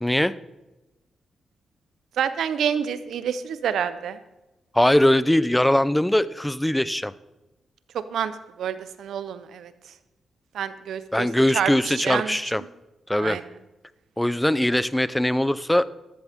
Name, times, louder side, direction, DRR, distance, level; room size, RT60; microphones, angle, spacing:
voice 1, 0.0-0.3 4.7-7.1 11.1-12.6 13.1-13.4 14.2-15.9, left 1 dB, 10° left, 17 dB, 0.6 m, -21 dB
voice 2, 2.2-4.2 7.9-9.7 10.5-11.3 11.5-12.4 13.2-13.4, right 8 dB, 80° right, 13 dB, 0.8 m, -28 dB
13.5 x 13.5 x 3.7 m, 1.0 s
supercardioid pair, 55°, 0 cm